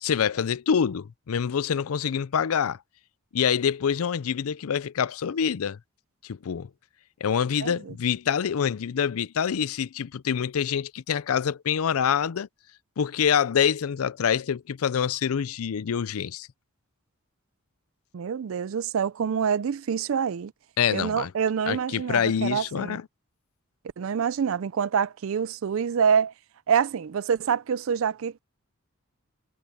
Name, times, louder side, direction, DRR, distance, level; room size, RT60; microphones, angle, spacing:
voice 1, 0.0-2.8 3.3-5.8 6.2-6.7 7.2-12.5 13.0-16.5 20.8-21.3 21.7-23.0, left 7 dB, 80° left, 0.5 m, -26 dB
voice 2, 7.6-7.9 18.1-20.5 20.9-23.0 24.0-26.3 26.7-28.4, right 7 dB, 70° right, 0.4 m, -26 dB
head